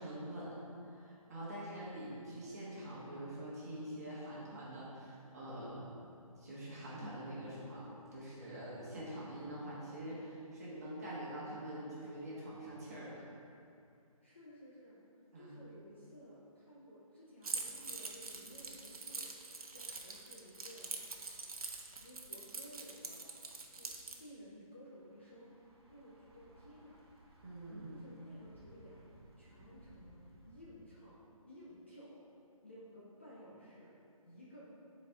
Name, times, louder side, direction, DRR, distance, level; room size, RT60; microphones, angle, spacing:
voice 1, 0.0-5.9 6.3-13.2 15.3-15.5 27.4-28.0, right 1 dB, 25° right, -7 dB, 1.3 m, -45 dB
voice 2, 14.2-15.0 15.3-19.4 19.7-21.0 22.0-23.3 23.7-25.5 25.9-27.0 27.9-29.0 29.4-30.2 30.5-31.2 31.5-32.2 32.6-33.9 34.2-34.6, equal, 20° left, -8 dB, 0.4 m, -55 dB
Keys jangling, 17.4-24.2, right 3 dB, 75° right, 0.8 m, -44 dB
Thunder / Bicycle, 24.9-30.7, right 1 dB, 40° right, 0.9 m, -61 dB
8.8 x 4.2 x 3.5 m, 2.6 s
hypercardioid pair, 175°, 19 cm